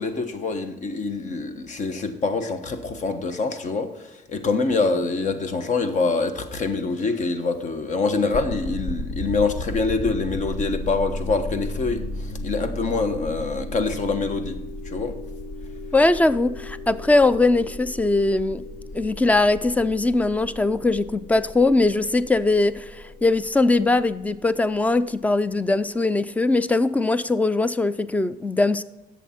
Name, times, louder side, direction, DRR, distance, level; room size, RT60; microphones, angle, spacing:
voice 1, 0.0-15.2, left 3 dB, 45° left, 9 dB, 1.2 m, -25 dB
sound 1, 8.3-25.2, left 1 dB, 65° left, 1.7 m, -35 dB
voice 2, 15.9-18.6 18.9-23.0 23.2-28.8, left 2 dB, 10° left, 15 dB, 0.4 m, -21 dB
11.0 x 7.4 x 4.3 m, 1.0 s
cardioid pair, 110°, 17 cm